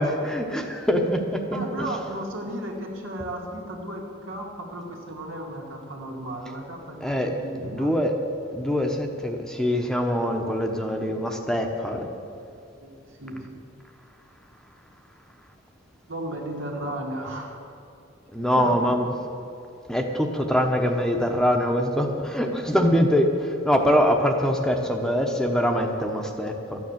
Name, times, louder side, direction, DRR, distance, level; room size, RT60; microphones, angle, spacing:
voice 1, 0.0-1.6 7.0-7.3 7.6-8.1 8.5-12.0 18.3-19.1 19.9-26.8, equal, 5° left, 3 dB, 0.9 m, -23 dB
voice 2, 1.5-7.9 12.8-13.5 16.1-17.6 18.6-18.9, right 1 dB, 90° right, 0 dB, 2.4 m, -35 dB
13.5 x 9.4 x 7.3 m, 2.6 s
head